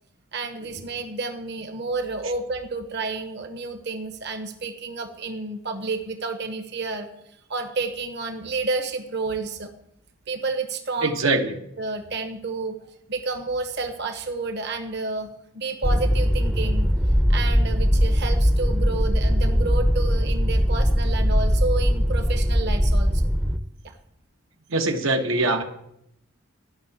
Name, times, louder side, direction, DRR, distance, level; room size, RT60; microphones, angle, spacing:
voice 1, 0.3-9.7 10.3-11.3 11.8-16.9 17.3-23.3 23.8-24.0, right 3 dB, 55° right, 6 dB, 1.1 m, -30 dB
voice 2, 11.0-11.5 24.7-25.6, right 2 dB, 80° right, 3 dB, 1.2 m, -22 dB
sound 1, 15.8-23.6, equal, 5° right, 0.6 m, -20 dB
12.5 x 5.9 x 8.0 m, 0.77 s
head